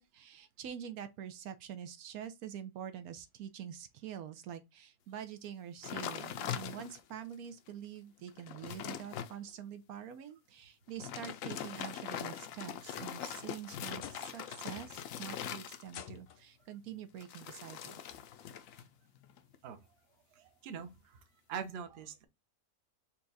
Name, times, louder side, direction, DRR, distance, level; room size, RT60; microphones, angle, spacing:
voice 1, 0.0-18.0, right 9 dB, 80° right, 1.1 m, -46 dB
sound 1, 5.8-7.1 7.7-7.8 8.2-9.3 10.9-16.2 17.2-18.9 19.2-19.6, left 9 dB, 70° left, 0.9 m, -42 dB
sound 2, 13.3-14.4 14.8-15.2 15.9-16.6 17.7-17.8 18.5-18.6 20.2-20.3, left 10 dB, 90° left, 1.1 m, -51 dB
voice 2, 20.3-22.3, right 7 dB, 50° right, 0.8 m, -44 dB
4.3 x 2.3 x 3.9 m
omnidirectional pair, 1.5 m